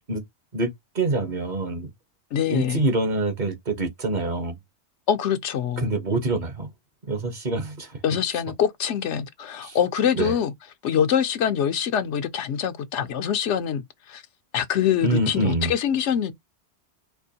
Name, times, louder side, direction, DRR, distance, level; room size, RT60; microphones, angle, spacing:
voice 1, 0.9-1.9 2.5-4.6 5.8-6.7 7.0-8.0 9.6-9.8 10.2-10.4 15.0-15.7, right 2 dB, 45° right, 0.9 m, -25 dB
voice 2, 2.3-2.8 5.1-5.9 8.0-10.5 10.8-13.8 14.1-14.2 14.5-16.3, left 8 dB, 85° left, 1.0 m, -24 dB
4.5 x 2.4 x 2.7 m
omnidirectional pair, 1.1 m